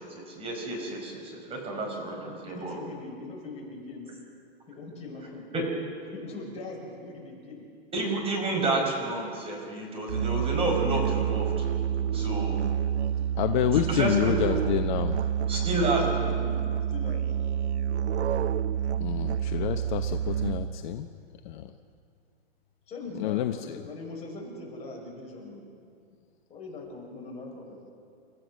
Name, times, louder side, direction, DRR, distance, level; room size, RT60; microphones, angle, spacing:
voice 1, 0.0-2.8 5.5-5.6 7.9-11.7 12.1-12.6 13.7-14.3 15.5-16.0, right 2 dB, 15° right, 1 dB, 5.3 m, -30 dB
voice 2, 2.2-4.2 4.7-5.4 6.1-7.6 15.8-17.3 22.9-25.6 26.5-27.9, left 2 dB, 20° left, -2 dB, 6.0 m, -41 dB
Musical instrument, 10.1-20.9, right 9 dB, 85° right, 0.7 m, -28 dB
voice 3, 13.4-15.1 19.0-21.1 21.5-21.6 23.2-23.8, left 11 dB, 45° left, 7 dB, 1.0 m, -28 dB
30.0 x 15.0 x 6.4 m, 2.3 s
hypercardioid pair, 135°, 32 cm